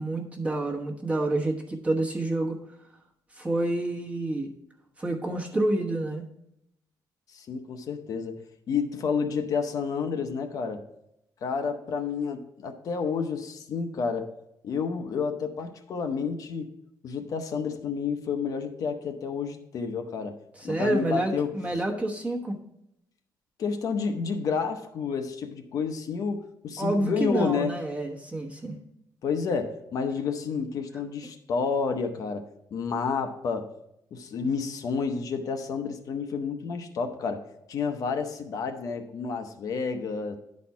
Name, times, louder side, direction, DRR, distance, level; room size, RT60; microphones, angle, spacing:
voice 1, 0.0-2.6 3.4-4.5 5.0-6.2 20.6-22.6 26.8-28.8, right 1 dB, 20° right, 1 dB, 1.1 m, -28 dB
voice 2, 7.3-8.4 8.7-10.8 11.4-14.3 14.6-16.7 17.0-20.4 20.6-21.5 23.6-27.7 29.2-33.7 34.1-40.4, left 5 dB, 55° left, 6 dB, 0.7 m, -30 dB
10.5 x 4.2 x 4.6 m, 0.81 s
cardioid pair, 145°, 7 cm